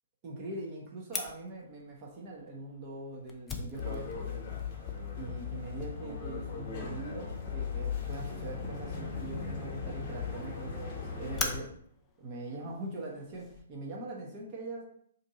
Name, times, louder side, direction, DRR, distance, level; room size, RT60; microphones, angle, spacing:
voice 1, 0.2-4.3 5.2-11.7 12.2-14.8, right 2 dB, 35° right, -3 dB, 0.7 m, -42 dB
Fire, 1.1-13.6, left 4 dB, 15° left, 0.4 m, -44 dB
sound 1, 3.7-11.6, left 6 dB, 35° left, 0.9 m, -38 dB
2.6 x 2.6 x 4.0 m, 0.64 s
figure-of-eight pair, 120°, 0 cm